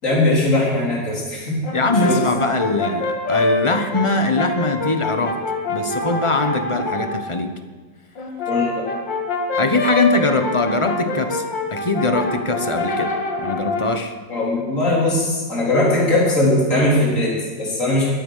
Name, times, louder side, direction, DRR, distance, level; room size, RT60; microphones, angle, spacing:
voice 1, 0.0-1.6 1.9-2.2 8.5-8.9 14.3-18.1, left 1 dB, 45° left, -5 dB, 4.5 m, -19 dB
Brass instrument, 1.6-7.2 8.1-14.0, left 3 dB, 85° left, 2.7 m, -25 dB
voice 2, 1.7-5.4 5.7-7.5 9.6-11.4 11.7-13.1 13.4-14.2, left 2 dB, 20° left, 7 dB, 0.8 m, -21 dB
22.0 x 8.9 x 6.4 m, 1.4 s
omnidirectional pair, 1.9 m